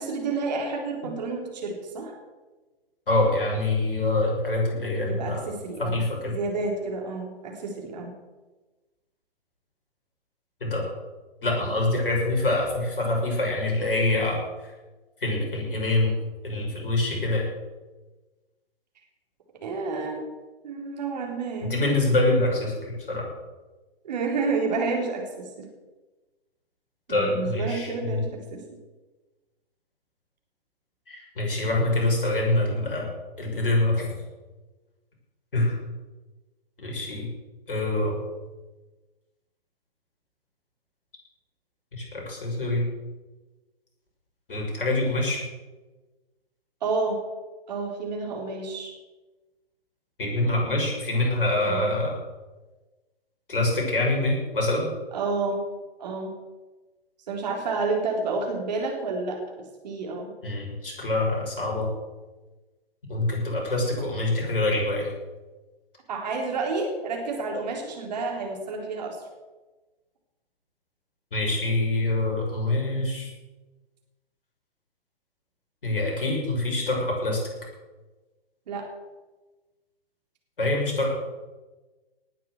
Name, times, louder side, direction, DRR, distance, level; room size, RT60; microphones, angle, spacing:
voice 1, 0.0-2.1 5.1-8.1 19.6-20.2 20.6-21.7 24.0-25.7 27.1-28.6 46.8-47.2 47.7-48.9 51.7-51.9 55.1-55.6 56.0-56.3 57.3-59.4 59.8-60.3 66.1-69.2 78.7-78.9, right 3 dB, 45° right, 1 dB, 3.9 m, -30 dB
voice 2, 3.1-5.4 5.8-6.3 10.6-10.9 11.4-14.4 15.2-16.2 16.4-17.5 21.7-23.3 27.1-28.2 31.1-33.1 33.4-34.1 35.5-35.8 36.8-37.3 37.7-38.2 41.9-42.8 44.5-45.4 50.2-52.2 53.5-54.9 60.4-61.9 63.1-65.1 71.3-73.3 75.8-77.4 80.6-81.2, left 2 dB, 60° left, -1 dB, 6.5 m, -25 dB
18.5 x 7.6 x 7.9 m, 1.2 s
figure-of-eight pair, 125°, 30 cm